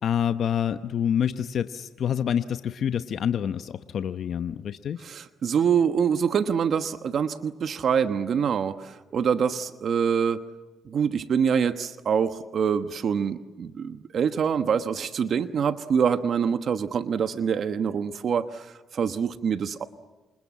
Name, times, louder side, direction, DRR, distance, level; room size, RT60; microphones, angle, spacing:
voice 1, 0.0-5.0, left 8 dB, 60° left, 10 dB, 0.9 m, -27 dB
voice 2, 5.0-10.4 10.8-19.8, right 7 dB, 55° right, 10 dB, 1.2 m, -25 dB
28.0 x 26.0 x 7.5 m, 1.2 s
cardioid pair, 90°, 0 cm